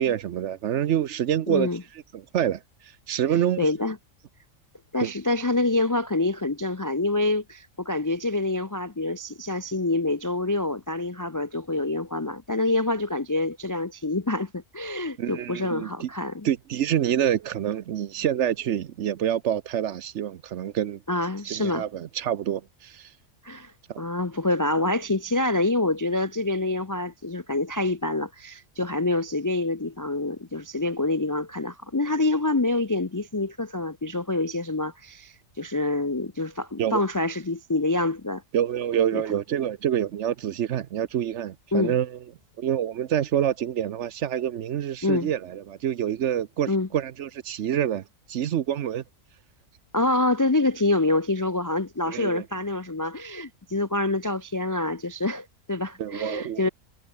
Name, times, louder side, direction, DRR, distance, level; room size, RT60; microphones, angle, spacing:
voice 1, 0.0-1.7 2.1-2.6 3.1-3.7 5.0-5.1 15.2-16.1 16.4-21.0 21.5-23.1 23.9-24.0 36.8-37.0 38.5-42.2 42.6-48.0 48.3-49.0 52.1-52.4 56.0-56.7, right 10 dB, 65° right, 1.0 m, -27 dB
voice 2, 1.5-1.8 3.6-4.0 4.9-16.5 21.1-21.9 23.4-38.4 39.1-39.2 41.7-42.0 45.0-45.3 46.7-46.9 49.9-56.7, left 2 dB, 30° left, 0.3 m, -26 dB
omnidirectional pair, 1.4 m